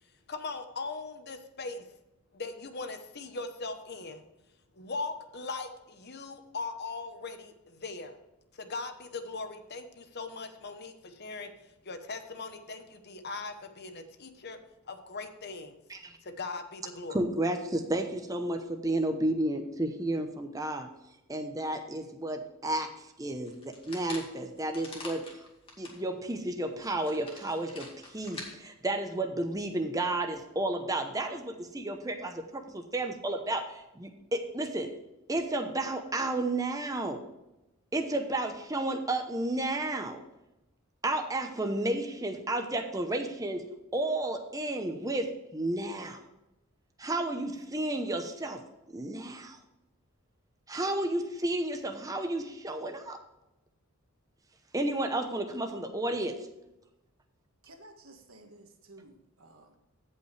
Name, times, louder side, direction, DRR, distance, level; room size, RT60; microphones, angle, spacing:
voice 1, 0.3-1.8 2.3-4.2 4.7-8.2 8.5-11.5 11.8-14.6 14.9-15.8 16.2-17.2, left 3 dB, 45° left, 8 dB, 0.9 m, -39 dB
voice 2, 17.1-20.9 21.3-22.9 23.2-25.4 25.8-34.9 35.3-37.2 37.9-40.2 41.0-43.6 43.9-46.2 47.0-48.6 48.9-49.6 50.7-53.2 54.7-56.4, right 1 dB, 15° right, 5 dB, 0.8 m, -32 dB
sound 1, 23.5-26.0 26.4-26.5 26.8-28.5, left 2 dB, 25° left, 2.1 m, -45 dB
voice 3, 57.6-59.7, right 2 dB, 65° right, 4 dB, 1.5 m, -54 dB
16.0 x 5.6 x 3.3 m, 0.94 s
head